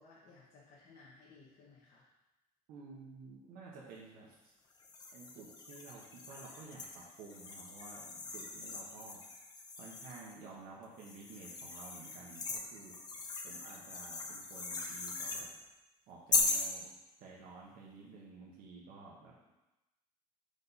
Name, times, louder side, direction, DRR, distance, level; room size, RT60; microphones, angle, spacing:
voice 1, 0.0-2.1, left 3 dB, 60° left, -6 dB, 1.3 m, -59 dB
voice 2, 2.7-4.4 5.1-9.2 9.8-13.1 13.4-15.5 16.1-16.9 17.2-19.5, right 4 dB, 75° right, -4 dB, 1.2 m, -52 dB
sound 1, 4.8-10.4 11.0-15.5 16.3-16.7, left 3 dB, 30° left, 0.7 m, -39 dB
5.3 x 5.2 x 4.2 m, 0.99 s
cardioid pair, 155°, 15 cm